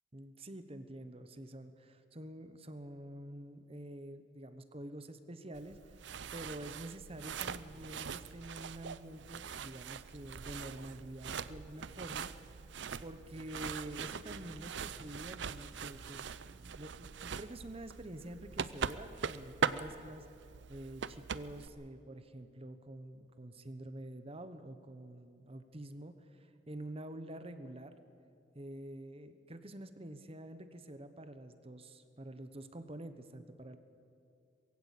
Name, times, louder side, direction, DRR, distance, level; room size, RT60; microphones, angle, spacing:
voice 1, 0.1-12.7 13.0-20.3 20.7-27.9 28.5-33.8, right 1 dB, 30° right, 10 dB, 1.1 m, -47 dB
sound 1, 5.5-21.7, right 6 dB, 65° right, 0.6 m, -42 dB
22.0 x 16.0 x 8.4 m, 2.5 s
head